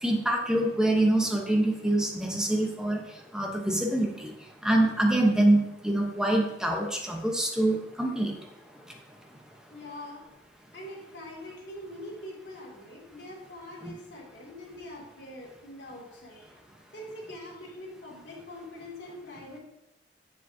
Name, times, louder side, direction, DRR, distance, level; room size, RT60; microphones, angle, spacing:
voice 1, 0.0-3.0 3.3-4.3 4.6-8.3 13.8-13.9, right 1 dB, 5° right, 0 dB, 1.0 m, -25 dB
voice 2, 9.7-10.3 10.7-16.5 16.9-19.6, left 1 dB, 75° left, -4 dB, 2.6 m, -43 dB
7.1 x 7.0 x 2.8 m, 0.91 s
head